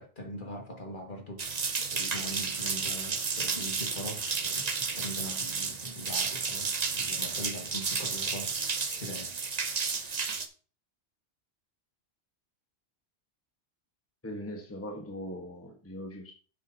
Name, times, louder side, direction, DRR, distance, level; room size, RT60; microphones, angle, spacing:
voice 1, 0.0-8.5 8.9-9.3, equal, 45° left, 1.9 m, -42 dB
sound 1, 1.4-10.5, right 5 dB, 40° right, 0.9 m, -32 dB
voice 2, 14.2-16.3, equal, 10° left, 1.2 m, -40 dB
10.5 x 7.5 x 2.8 m
omnidirectional pair, 1.2 m